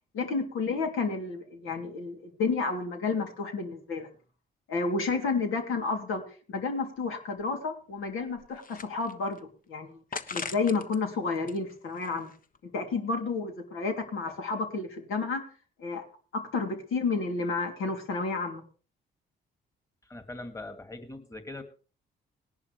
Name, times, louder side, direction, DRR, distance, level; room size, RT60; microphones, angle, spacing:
voice 1, 0.1-4.1 4.7-9.4 9.7-10.0 10.3-12.3 12.7-15.4 15.8-16.1 16.3-18.6, left 4 dB, 75° left, 3 dB, 3.1 m, -31 dB
sound 1, 7.0-7.1 7.4-7.5 8.1-9.4 10.1-11.0 11.4-12.6, left 5 dB, 40° left, 1.1 m, -40 dB
voice 2, 20.0-21.6, left 2 dB, 15° left, 7 dB, 2.3 m, -41 dB
19.0 x 11.0 x 3.3 m, 0.37 s
supercardioid pair, 65°, 21 cm